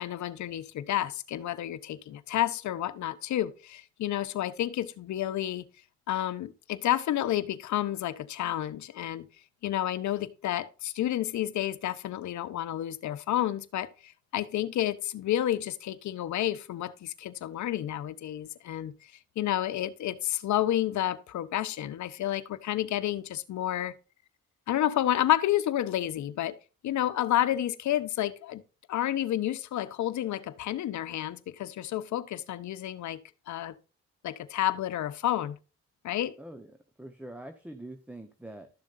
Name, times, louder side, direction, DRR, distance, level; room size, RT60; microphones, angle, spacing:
voice 1, 0.0-5.7 6.1-9.3 9.6-18.9 19.4-24.0 24.7-26.6 26.8-28.6 28.9-33.2 33.5-33.7 34.2-35.6 36.0-36.3, left 12 dB, 70° left, 1.0 m, -30 dB
voice 2, 36.4-36.7 37.0-38.7, right 1 dB, 5° right, 1.1 m, -44 dB
13.0 x 7.2 x 2.6 m
cardioid pair, 90°, 30 cm